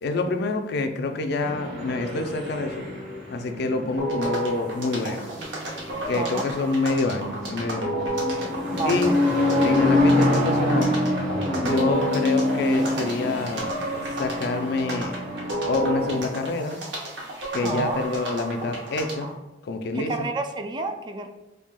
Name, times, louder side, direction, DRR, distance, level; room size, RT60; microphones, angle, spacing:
voice 1, 0.0-2.8 3.3-5.3 6.1-8.1 8.8-9.1 9.6-10.9 11.6-13.7 14.2-15.1 15.7-16.8 17.5-19.3 19.6-20.3, left 3 dB, 65° left, 6 dB, 0.4 m, -27 dB
sound 1, 1.4-16.2, left 1 dB, 40° right, 1.2 m, -27 dB
sound 2, 4.0-19.3, right 1 dB, 80° right, 1.0 m, -32 dB
voice 2, 8.7-9.2 17.6-18.0 19.9-21.3, right 3 dB, 25° right, 5 dB, 0.3 m, -30 dB
5.5 x 2.7 x 2.2 m, 1.0 s
head